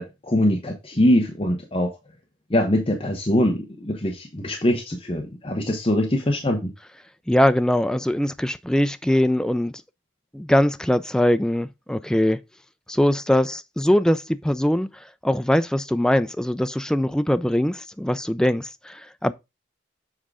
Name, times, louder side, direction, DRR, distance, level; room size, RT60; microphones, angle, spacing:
voice 1, 0.0-1.9 2.5-6.7, left 1 dB, 30° left, 0.9 m, -22 dB
voice 2, 7.3-9.7 10.3-12.4 12.9-14.9 15.2-19.3, left 1 dB, 5° left, 0.3 m, -21 dB
7.4 x 3.8 x 4.8 m
head